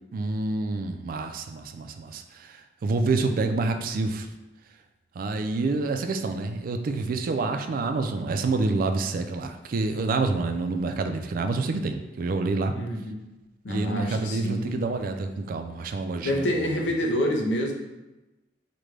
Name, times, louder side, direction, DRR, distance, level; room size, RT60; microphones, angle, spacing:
voice 1, 0.1-2.6 2.8-4.3 5.2-12.7 13.7-16.7, right 3 dB, 50° right, 6 dB, 0.3 m, -27 dB
voice 2, 12.7-13.2 13.6-14.8 16.2-17.7, equal, 85° left, 2 dB, 0.6 m, -27 dB
5.0 x 2.2 x 3.2 m, 1.0 s
head